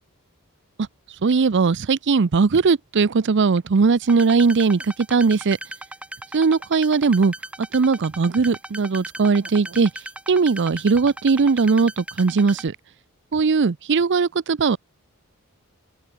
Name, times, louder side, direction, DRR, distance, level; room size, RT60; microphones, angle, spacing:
voice 1, 1.2-5.6 6.3-7.3 7.7-9.9 10.3-12.8 13.3-14.8, right 4 dB, 55° right, 0.5 m, -19 dB
sound 1, 4.0-12.7, right 1 dB, 5° right, 1.4 m, -37 dB
head